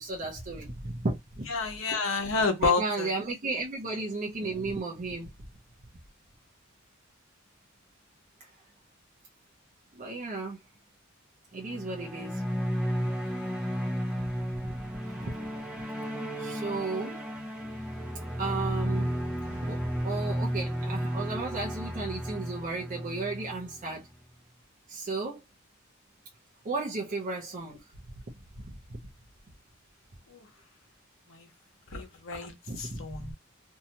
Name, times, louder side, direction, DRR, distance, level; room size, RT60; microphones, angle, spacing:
voice 1, 0.0-1.5 2.6-5.3 8.4-8.5 9.9-10.6 11.5-12.4 14.1-15.5 16.4-17.2 18.4-19.1 19.5-24.1 24.9-25.4 26.6-27.8 28.6-29.0 32.7-33.3, right 3 dB, 40° right, 0.6 m, -34 dB
voice 2, 1.5-3.1 30.3-30.5 31.3-31.5 31.9-33.3, left 4 dB, 75° left, 0.9 m, -30 dB
sound 1, 11.6-24.1, equal, 5° right, 0.7 m, -33 dB
2.7 x 2.2 x 2.8 m
head